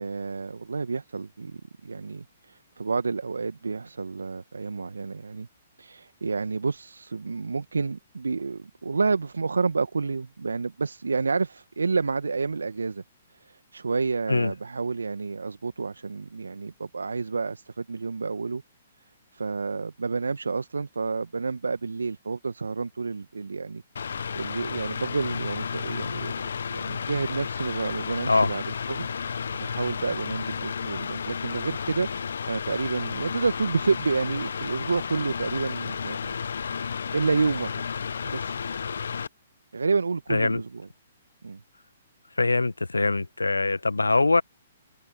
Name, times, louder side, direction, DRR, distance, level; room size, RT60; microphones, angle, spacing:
voice 1, 0.0-5.5 5.8-13.0 13.3-18.6 19.3-32.1 32.5-36.4 36.7-37.8 38.2-38.6 39.7-40.8 41.4-41.6, right 4 dB, 75° right, 1.5 m, -30 dB
Mechanical fan, 24.0-39.3, left 6 dB, 65° left, 0.9 m, -32 dB
voice 2, 40.3-40.6 42.4-44.4, left 3 dB, 85° left, 1.4 m, -23 dB
figure-of-eight pair, 125°, 0 cm